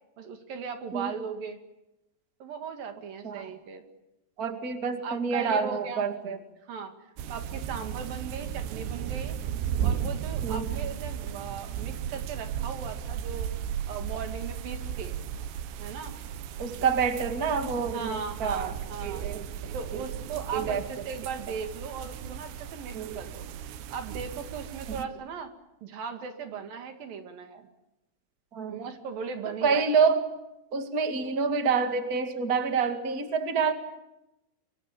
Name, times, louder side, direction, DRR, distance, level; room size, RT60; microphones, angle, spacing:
voice 1, 0.2-1.6 2.4-3.8 5.0-6.1 6.7-9.4 9.8-13.5 13.9-15.2 15.8-16.2 16.6-16.8 17.9-19.2 19.7-23.4 23.9-25.5 25.8-27.7 28.7-30.1, right 6 dB, 55° right, 6 dB, 3.4 m, -38 dB
voice 2, 4.4-6.4 10.4-10.7 16.6-18.7 19.0-20.0 20.5-20.8 22.9-23.2 24.9-25.0 28.5-28.8 29.6-30.2 30.7-33.7, right 5 dB, 90° right, 7 dB, 0.8 m, -27 dB
sound 1, 7.2-25.0, right 9 dB, 70° right, 3.0 m, -35 dB
25.5 x 25.0 x 9.0 m, 0.93 s
omnidirectional pair, 5.7 m